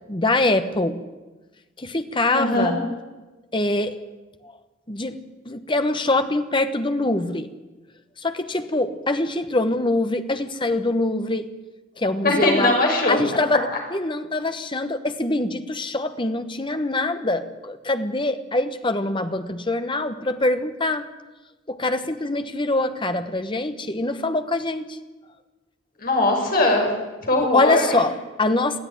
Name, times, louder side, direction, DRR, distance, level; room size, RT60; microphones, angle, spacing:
voice 1, 0.1-1.0 1.8-2.8 3.5-4.0 4.9-5.2 5.4-7.5 8.2-11.5 12.0-12.7 13.1-21.1 21.7-25.0 27.4-28.8, left 2 dB, 25° left, 9 dB, 1.2 m, -24 dB
voice 2, 2.3-2.7 12.2-13.2 26.0-26.9 27.2-27.9, left 2 dB, 45° left, 1 dB, 5.9 m, -20 dB
23.0 x 15.0 x 9.9 m, 1.2 s
head